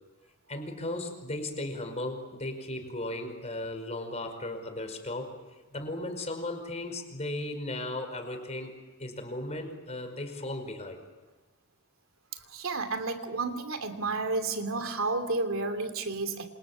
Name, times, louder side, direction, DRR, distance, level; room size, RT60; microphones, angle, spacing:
voice 1, 0.5-5.4 5.7-11.0, left 1 dB, 30° left, 6 dB, 5.2 m, -36 dB
voice 2, 12.3-16.5, right 3 dB, 65° right, 8 dB, 3.0 m, -31 dB
28.5 x 27.5 x 7.5 m, 1.3 s
head